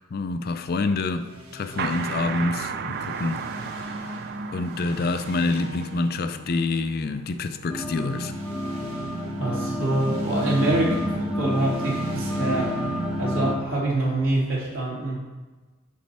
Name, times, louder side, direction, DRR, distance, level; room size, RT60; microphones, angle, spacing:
voice 1, 0.1-1.3 1.5-3.4 3.7-4.2 4.5-8.3 10.7-11.1, left 3 dB, 45° left, 0.4 m, -27 dB
sound 1, 1.1-14.7, equal, 85° right, 1.4 m, -39 dB
sound 2, 1.8-7.2, right 6 dB, 45° right, 0.4 m, -34 dB
sound 3, 7.7-13.5, equal, 5° right, 0.6 m, -29 dB
voice 2, 9.4-11.0 11.4-12.7 13.2-15.2, right 2 dB, 70° right, 2.5 m, -25 dB
7.3 x 4.3 x 5.4 m
head